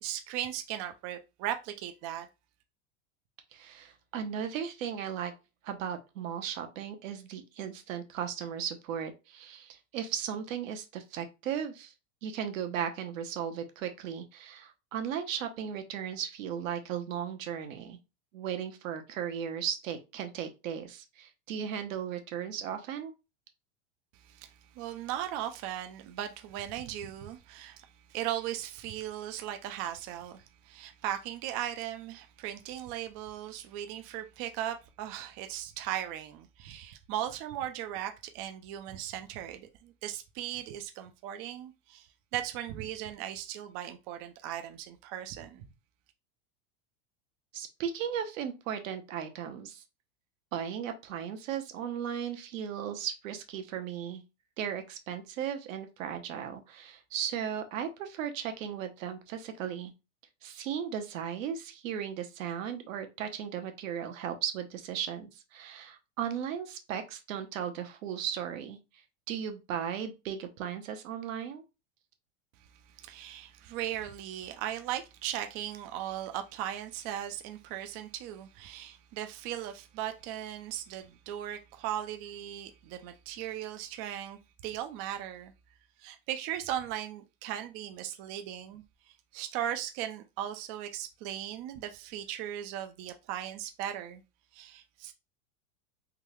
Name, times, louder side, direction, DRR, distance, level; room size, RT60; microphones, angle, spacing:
voice 1, 0.0-2.3 24.2-45.7 73.0-85.5 86.0-94.2 94.5-95.1, right 11 dB, 35° right, 0.4 m, -38 dB
voice 2, 3.5-5.3 5.6-11.9 12.2-18.0 18.3-23.1 47.5-49.8 50.5-54.2 54.6-59.9 60.4-68.8 69.3-71.6, right 8 dB, 70° right, 0.9 m, -36 dB
3.6 x 2.2 x 3.0 m
supercardioid pair, 125°, 40 cm